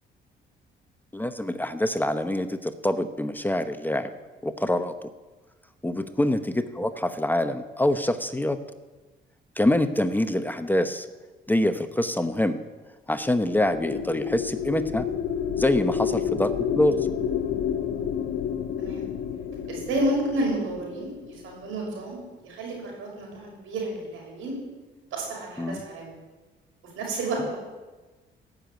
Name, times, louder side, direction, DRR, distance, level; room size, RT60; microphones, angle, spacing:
voice 1, 1.1-4.1 4.4-4.9 5.8-8.6 9.6-11.1 11.5-12.6 13.1-15.1 15.6-17.0 25.6-25.8, left 1 dB, 10° left, 9 dB, 0.8 m, -25 dB
sound 1, 13.3-21.8, left 8 dB, 80° left, 1.4 m, -30 dB
voice 2, 19.7-24.6 25.1-26.1 27.0-27.6, right 1 dB, 85° right, -1 dB, 6.1 m, -31 dB
15.0 x 6.8 x 9.2 m, 1.2 s
cardioid pair, 90°, 20 cm